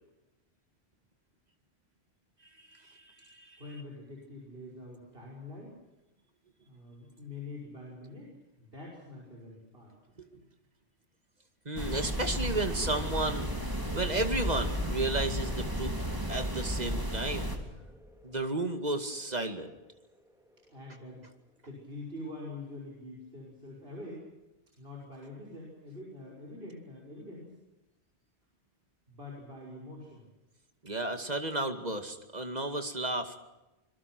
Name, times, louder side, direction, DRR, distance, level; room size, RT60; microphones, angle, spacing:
voice 1, 2.6-3.6 10.2-10.3 11.7-13.5 13.9-15.9 16.3-17.5 18.2-19.7 30.8-33.4, right 2 dB, 40° right, 6 dB, 2.5 m, -33 dB
voice 2, 3.6-5.8 6.6-9.9 20.7-21.3 21.6-24.3 24.8-27.6 29.1-30.2, left 2 dB, 60° right, -3 dB, 6.0 m, -45 dB
sound 1, 11.8-17.6, equal, 20° right, 3.3 m, -34 dB
Thunderstorm, 13.7-21.1, right 1 dB, 5° right, 2.1 m, -46 dB
26.5 x 22.0 x 6.2 m, 1.0 s
omnidirectional pair, 1.1 m